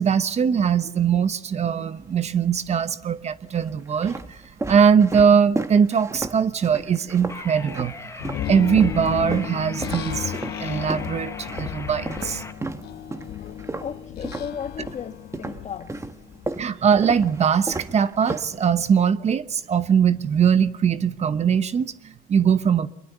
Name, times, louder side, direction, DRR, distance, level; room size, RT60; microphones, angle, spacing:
voice 1, 0.0-4.4 4.7-10.3 10.6-12.4 16.6-22.9, right 7 dB, 40° right, 1.0 m, -21 dB
sound 1, 2.0-2.7 3.4-8.5 8.8-15.0 15.3-19.0, right 3 dB, 15° right, 1.5 m, -34 dB
sound 2, 7.3-12.5, left 3 dB, 15° left, 1.2 m, -40 dB
sound 3, 8.2-16.5, left 11 dB, 75° left, 1.4 m, -34 dB
voice 2, 13.8-16.0, left 7 dB, 45° left, 1.6 m, -35 dB
24.5 x 22.0 x 8.2 m
cardioid pair, 110°, 17 cm